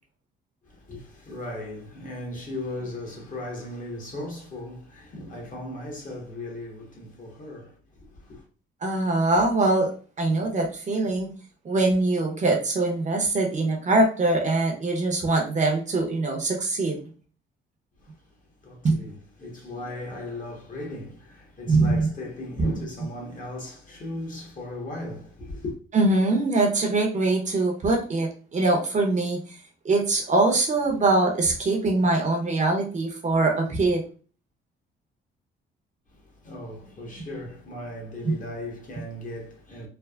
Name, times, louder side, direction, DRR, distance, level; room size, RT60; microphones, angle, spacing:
voice 1, 0.7-8.4 18.0-18.3 18.6-25.7 36.1-39.9, left 1 dB, 40° left, 1.1 m, -37 dB
voice 2, 8.8-11.3 11.6-17.0 18.8-19.0 21.7-22.1 22.6-22.7 25.9-29.4 29.8-34.0 38.2-38.3, right 2 dB, 40° right, 0.7 m, -23 dB
3.3 x 2.0 x 2.3 m
cardioid pair, 90°, 20 cm